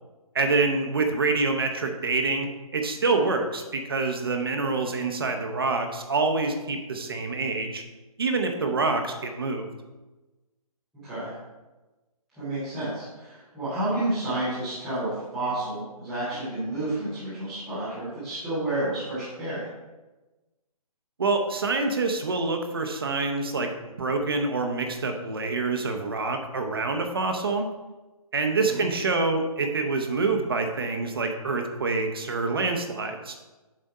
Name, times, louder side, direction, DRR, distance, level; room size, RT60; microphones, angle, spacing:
voice 1, 0.3-7.8 8.2-9.7 21.2-23.7 24.0-27.7 28.3-33.3, right 3 dB, 40° right, 4 dB, 0.8 m, -26 dB
voice 2, 11.0-11.3 12.3-19.7 28.6-28.8, right 1 dB, ahead, -21 dB, 0.5 m, -30 dB
7.4 x 4.2 x 5.4 m, 1.1 s
hypercardioid pair, 180°, 19 cm